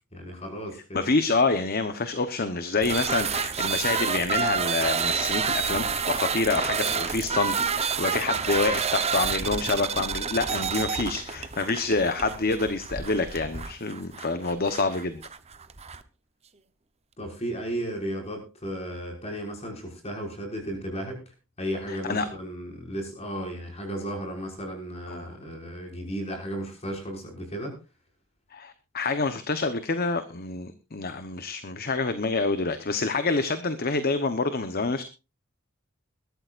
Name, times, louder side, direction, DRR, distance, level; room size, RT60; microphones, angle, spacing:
voice 1, 0.1-1.0 17.2-21.2 21.6-27.8, equal, 30° left, 1 dB, 5.9 m, -34 dB
voice 2, 0.9-15.2 21.9-22.3 25.1-25.3 28.5-35.0, left 3 dB, 45° left, 10 dB, 1.0 m, -27 dB
sound 1, 2.8-16.0, right 6 dB, 30° right, 0.9 m, -29 dB
21.5 x 13.0 x 2.5 m, 0.29 s
head